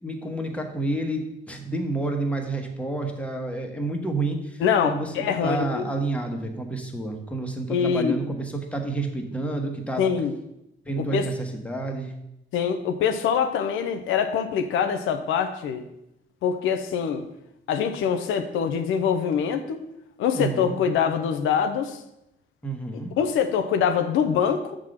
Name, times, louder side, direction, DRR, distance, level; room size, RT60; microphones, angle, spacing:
voice 1, 0.0-1.2 1.5-10.0 10.8-12.1 20.3-20.8 22.6-23.1, right 2 dB, 5° left, 3 dB, 1.3 m, -29 dB
voice 2, 4.6-5.9 7.7-8.1 10.0-10.3 11.0-11.3 12.5-15.8 16.4-17.2 17.7-19.8 20.2-22.0 23.2-24.8, left 7 dB, 85° left, 7 dB, 0.7 m, -24 dB
7.3 x 3.8 x 6.4 m, 0.86 s
cardioid pair, 90°, 20 cm